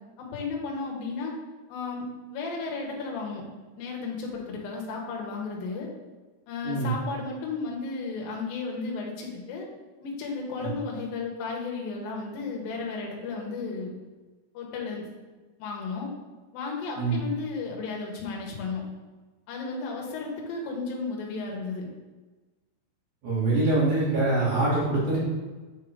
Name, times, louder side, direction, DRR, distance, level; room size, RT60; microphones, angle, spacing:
voice 1, 0.2-1.4 1.7-2.1 2.3-3.5 3.8-5.9 6.5-9.7 10.0-13.9 14.5-15.1 15.6-16.1 16.5-18.8 19.5-21.9, left 4 dB, 70° left, -1 dB, 2.6 m, -34 dB
voice 2, 23.2-25.2, right 2 dB, 50° right, -8 dB, 3.3 m, -24 dB
8.3 x 4.3 x 3.6 m, 1.3 s
omnidirectional pair, 5.0 m